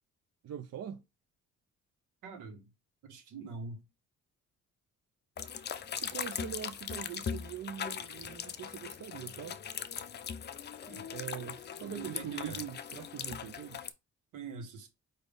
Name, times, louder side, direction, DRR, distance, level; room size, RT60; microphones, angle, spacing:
voice 1, 0.4-1.0 6.0-9.6 11.1-13.9, right 9 dB, 60° right, 0.5 m, -43 dB
voice 2, 2.2-2.7 3.0-3.8 10.9-11.1 11.8-12.6 14.3-14.9, right 5 dB, 85° right, 1.3 m, -44 dB
sound 1, 5.4-13.9, left 7 dB, 35° left, 0.4 m, -40 dB
5.0 x 2.7 x 3.4 m
cardioid pair, 90°, 30 cm